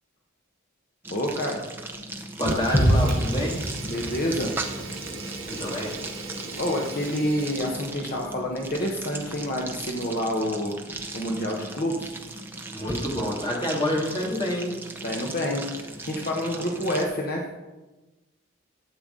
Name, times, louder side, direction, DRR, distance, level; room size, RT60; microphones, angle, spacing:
sound 1, 1.0-17.0, right 2 dB, 10° right, 0.7 m, -37 dB
voice 1, 1.1-1.6 3.8-4.5 6.6-10.8 11.1-12.1 15.0-17.4, equal, 45° left, 0 dB, 1.1 m, -28 dB
voice 2, 2.4-3.5 5.5-5.9 12.7-14.7, left 1 dB, 20° left, -2 dB, 2.1 m, -27 dB
Fire, 2.4-8.0, right 2 dB, 75° right, 1.5 m, -38 dB
sound 2, 2.7-6.7 7.0-7.1, equal, 5° left, 3.2 m, -27 dB
12.0 x 7.8 x 3.8 m, 1.1 s
head